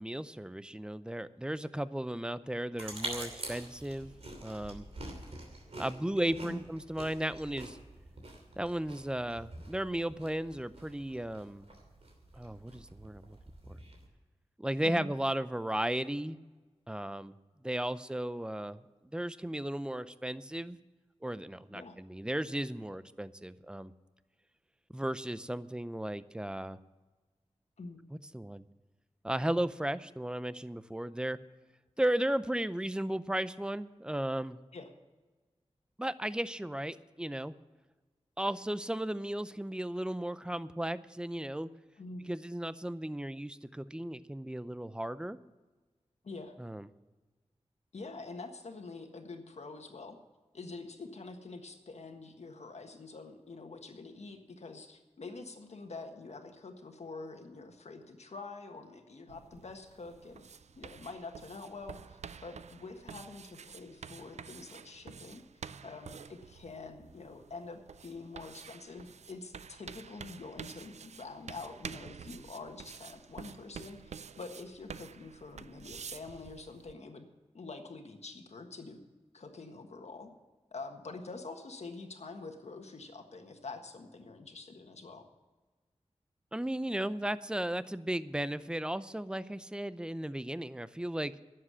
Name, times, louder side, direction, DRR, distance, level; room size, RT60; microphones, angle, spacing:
voice 1, 0.0-4.1 4.4-4.8 5.8-7.8 8.6-11.7 12.3-13.4 13.7-13.8 14.6-16.4 16.9-17.3 17.6-18.8 19.1-20.8 21.2-23.9 24.9-26.8 28.1-28.6 29.2-31.4 32.0-34.6 36.0-37.5 38.4-41.7 42.3-45.4 46.6-46.9 86.5-91.3, right 1 dB, 10° right, 15 dB, 0.5 m, -35 dB
sound 1, 2.8-14.1, right 1 dB, 65° right, 2.9 m, -46 dB
voice 2, 47.9-50.2 50.5-60.4 60.8-77.3 77.5-79.0 79.3-80.3 80.7-85.3, left 3 dB, 75° left, 5 dB, 1.6 m, -46 dB
sound 2, 59.3-76.9, right 6 dB, 80° right, 0.4 m, -49 dB
11.0 x 7.6 x 9.9 m, 1.3 s
wide cardioid pair, 70°, 11 cm